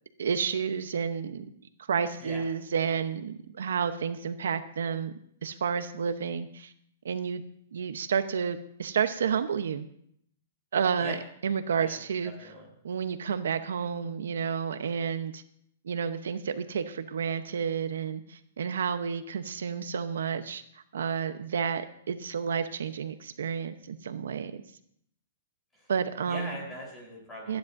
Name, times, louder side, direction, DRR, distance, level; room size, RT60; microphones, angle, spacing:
voice 1, 0.2-1.4 1.9-5.1 5.4-6.7 7.0-7.4 7.7-9.9 10.7-11.2 11.4-12.3 12.8-15.4 15.8-20.6 20.9-24.5 25.9-26.6 27.5-27.6, right 7 dB, 85° right, 10 dB, 0.9 m, -30 dB
voice 2, 11.8-12.7 25.7-25.9 26.3-27.6, equal, 10° left, -2 dB, 4.1 m, -41 dB
25.0 x 10.5 x 2.7 m, 0.68 s
hypercardioid pair, 170°, 0 cm